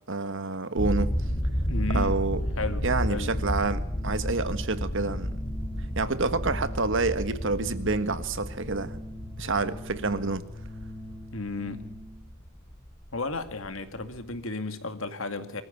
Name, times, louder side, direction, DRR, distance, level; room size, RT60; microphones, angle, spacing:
voice 1, 0.1-1.1 1.9-2.5 2.8-5.4 5.9-9.0 9.4-10.4, right 3 dB, 70° right, 1.5 m, -28 dB
sound 1, 0.7-14.4, equal, 40° left, 4.6 m, -32 dB
voice 2, 1.7-2.1 2.6-3.4 11.3-11.9 13.1-15.6, left 3 dB, 75° left, 2.3 m, -34 dB
Organ, 2.0-12.3, left 1 dB, 10° left, 5.0 m, -44 dB
23.0 x 14.5 x 8.5 m
head